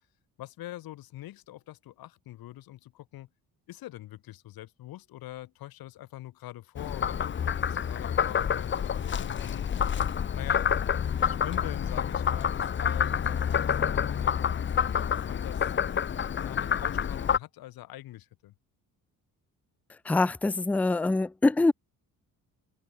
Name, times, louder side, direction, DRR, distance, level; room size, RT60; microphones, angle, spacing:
voice 1, 0.4-3.3 3.7-10.7 11.2-14.7 15.0-15.7 16.4-18.5, left 15 dB, 90° left, 2.6 m, -44 dB
Frog, 6.8-17.4, left 8 dB, 35° left, 0.8 m, -28 dB
voice 2, 20.0-21.7, left 2 dB, 5° left, 0.4 m, -24 dB
open air
cardioid pair, 125°, 35 cm